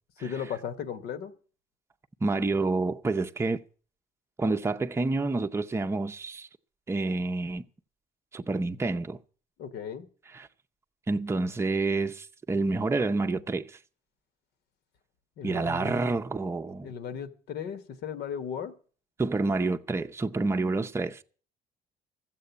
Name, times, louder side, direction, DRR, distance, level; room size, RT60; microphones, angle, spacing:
voice 1, 0.2-1.3 9.6-10.1 15.4-16.1 16.8-18.7, left 7 dB, 70° left, 1.5 m, -36 dB
voice 2, 2.2-3.6 4.4-6.5 6.9-7.6 8.3-9.2 10.3-10.5 11.1-13.8 15.4-16.9 19.2-21.2, right 3 dB, 15° right, 0.6 m, -28 dB
14.0 x 7.7 x 8.3 m
cardioid pair, 110°, 17 cm